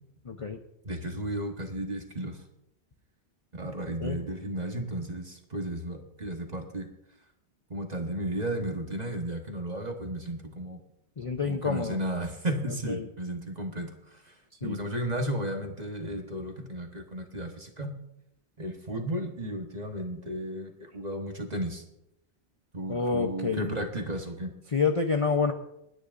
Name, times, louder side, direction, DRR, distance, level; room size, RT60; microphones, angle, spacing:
voice 1, 0.2-0.6 4.0-4.2 11.2-12.0 12.9-13.0 14.6-14.8 22.9-23.7 24.7-25.5, left 5 dB, 35° left, 4 dB, 0.7 m, -28 dB
voice 2, 0.8-2.4 3.5-6.9 7.7-10.8 11.4-17.9 18.6-21.8 22.7-24.5, right 1 dB, 40° right, 3 dB, 1.5 m, -34 dB
29.0 x 10.0 x 2.6 m, 0.82 s
omnidirectional pair, 1.1 m